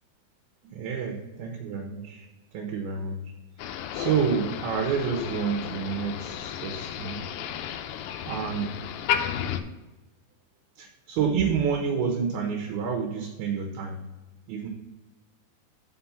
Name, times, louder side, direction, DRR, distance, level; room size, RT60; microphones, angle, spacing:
voice 1, 0.7-2.3 2.5-3.2 3.9-7.2 8.3-8.7 10.8-14.0 14.5-14.7, right 6 dB, 75° right, 1 dB, 2.6 m, -29 dB
Motor vehicle (road), 3.6-9.6, left 10 dB, 85° left, 2.7 m, -33 dB
6.1 x 5.9 x 5.7 m, 1.1 s
omnidirectional pair, 5.0 m